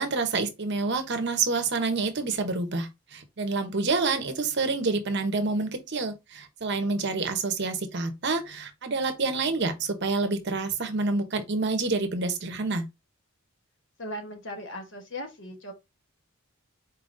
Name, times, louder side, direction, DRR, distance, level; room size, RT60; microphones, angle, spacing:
voice 1, 0.0-12.9, right 3 dB, 50° right, 0.8 m, -28 dB
voice 2, 14.0-15.7, left 1 dB, 55° left, 1.1 m, -38 dB
4.5 x 3.7 x 2.5 m
head